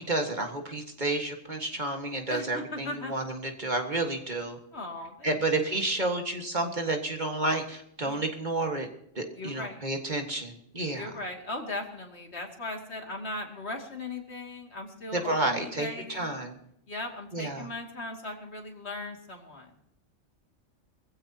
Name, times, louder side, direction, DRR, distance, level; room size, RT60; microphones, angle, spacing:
voice 1, 0.0-4.6 5.2-8.9 9.2-11.1 15.1-16.6 17.3-17.7, right 2 dB, 40° right, 3 dB, 1.8 m, -30 dB
voice 2, 2.3-3.1 4.7-5.4 8.0-8.2 9.3-9.8 10.9-16.5 16.9-19.8, left 2 dB, 55° left, 1 dB, 2.7 m, -38 dB
22.5 x 15.5 x 2.9 m, 0.74 s
omnidirectional pair, 1.3 m